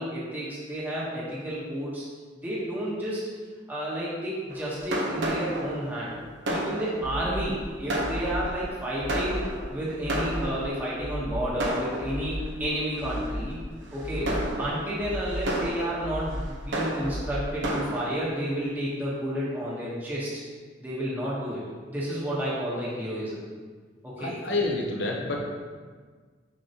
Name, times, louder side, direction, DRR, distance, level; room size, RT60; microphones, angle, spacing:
voice 1, 0.0-2.0 2.4-3.2 3.7-6.1 6.5-9.4 9.7-13.6 13.9-14.3 14.6-20.3 20.8-21.6 21.9-23.4 24.0-24.3, equal, 10° right, -8 dB, 1.2 m, -31 dB
Fireworks, 4.5-10.9 11.6-12.5 13.1-13.3 13.9-18.0, right 1 dB, 80° right, 1.0 m, -32 dB
sound 1, 7.0-7.7 8.0-8.7 9.0-9.6 10.0-10.7 11.0-11.6 12.0-12.7 13.0-13.6 14.0-14.7 15.0-15.7 16.0-16.7 17.0-17.7, equal, 15° left, 0.5 m, -35 dB
voice 2, 14.2-14.5 24.2-25.6, left 2 dB, 75° left, 0 dB, 1.0 m, -29 dB
6.3 x 5.6 x 2.9 m, 1.5 s
head